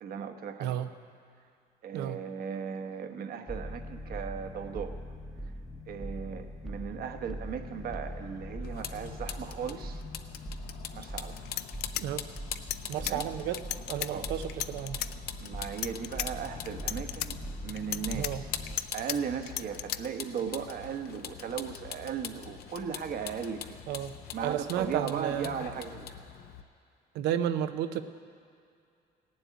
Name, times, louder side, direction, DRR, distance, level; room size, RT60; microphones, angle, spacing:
voice 1, 0.0-0.8 1.8-5.0 5.4-5.5 5.9-10.0 10.9-11.4 13.0-13.3 14.1-14.3 15.4-18.5 18.9-23.8 24.3-26.2, right 7 dB, 60° right, 7 dB, 1.2 m, -37 dB
sound 1, 3.5-18.8, equal, ahead, 0.9 m, -42 dB
Vehicle, 8.6-26.6, left 8 dB, 65° left, 0.9 m, -43 dB
sound 2, 11.1-11.2 11.5-13.2 13.6-14.1 14.5-15.1 15.6-16.3 16.7-17.3 17.8-19.2 19.5-20.0, left 14 dB, 85° left, 0.5 m, -34 dB
voice 2, 12.9-13.6 13.9-14.4 14.7-15.0 18.1-18.4 23.9-24.1 24.4-25.5 27.1-28.0, right 10 dB, 90° right, 10 dB, 0.8 m, -32 dB
16.5 x 7.7 x 9.4 m, 2.4 s
cardioid pair, 110°, 17 cm